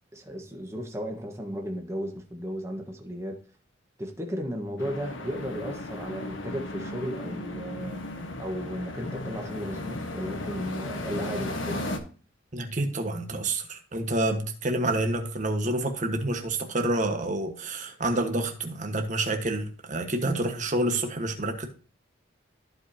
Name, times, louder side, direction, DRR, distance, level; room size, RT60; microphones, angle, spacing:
voice 1, 0.1-3.4 4.0-11.9, equal, 15° right, 1.4 m, -35 dB
sound 1, 4.8-12.0, left 1 dB, 80° left, 1.3 m, -35 dB
voice 2, 12.5-21.7, right 1 dB, 40° right, 1.4 m, -28 dB
14.5 x 5.1 x 2.8 m
head